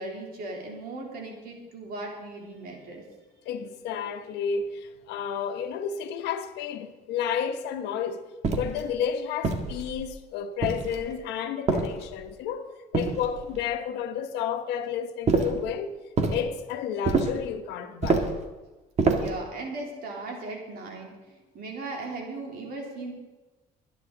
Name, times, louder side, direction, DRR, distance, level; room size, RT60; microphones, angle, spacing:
voice 1, 0.0-3.0 19.0-23.1, right 2 dB, 65° right, 3.5 m, -37 dB
voice 2, 3.4-15.9 16.3-18.3, left 7 dB, 85° left, 1.3 m, -31 dB
sound 1, 8.4-8.8 9.4-10.1 10.6-11.1 11.7-12.3 12.9-13.6 15.3-15.6 16.2-16.4 17.0-17.4 18.0-18.4 19.0-19.4, right 4 dB, 40° right, 1.8 m, -26 dB
22.5 x 9.9 x 4.0 m
cardioid pair, 110°, 17 cm